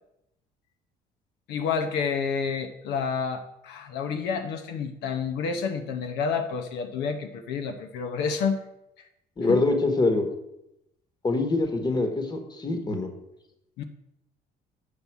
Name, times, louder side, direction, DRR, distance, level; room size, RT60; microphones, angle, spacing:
voice 1, 1.5-8.6 9.5-9.6 13.8-13.9, left 5 dB, 85° left, 6 dB, 0.8 m, -29 dB
voice 2, 9.4-10.2 11.2-13.1, left 2 dB, 25° left, 6 dB, 1.3 m, -24 dB
8.7 x 5.4 x 4.6 m, 0.84 s
cardioid pair, 110°, 17 cm